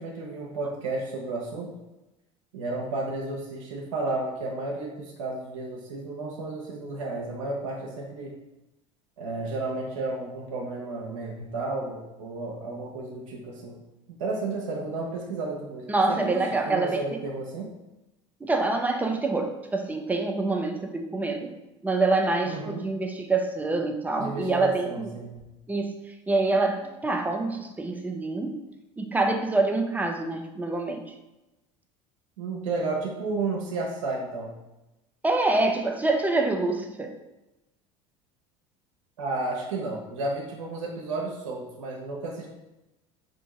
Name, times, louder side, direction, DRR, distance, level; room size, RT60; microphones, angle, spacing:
voice 1, 0.0-1.7 2.5-8.3 9.2-13.8 14.1-17.7 22.4-22.8 24.2-25.4 32.4-34.6 39.2-42.5, right 3 dB, 85° right, -2 dB, 0.6 m, -32 dB
voice 2, 15.9-17.0 18.4-21.5 21.8-25.1 25.7-26.0 26.3-28.6 29.0-31.0 35.2-37.1, right 3 dB, 10° right, 4 dB, 0.5 m, -26 dB
3.5 x 2.5 x 2.9 m, 0.99 s
hypercardioid pair, 80°, 16 cm